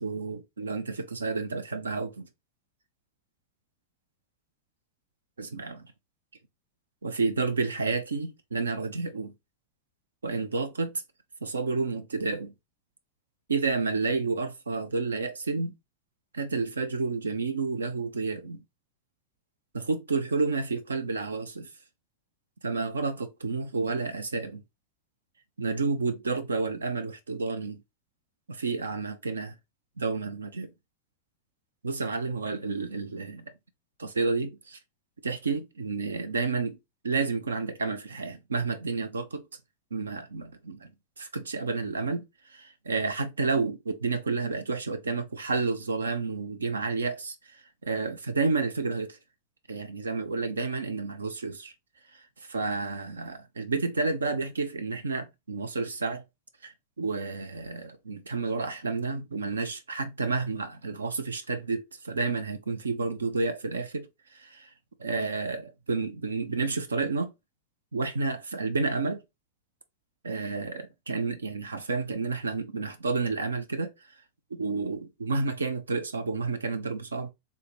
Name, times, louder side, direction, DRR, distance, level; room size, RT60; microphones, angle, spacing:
voice 1, 0.0-2.3 5.4-5.9 7.0-9.3 10.2-10.9 11.4-12.5 13.5-15.7 16.3-18.6 19.7-21.7 22.6-24.6 25.6-27.8 28.5-29.6 30.0-30.7 31.8-33.4 34.0-34.8 35.2-36.8 37.0-39.4 39.9-40.9 41.2-49.2 49.7-51.7 52.5-56.2 56.6-64.7 65.0-67.3 67.9-69.2 70.2-73.9 74.5-77.3, right 4 dB, 75° right, 0.6 m, -30 dB
3.5 x 2.7 x 4.0 m
figure-of-eight pair, 90°, 0 cm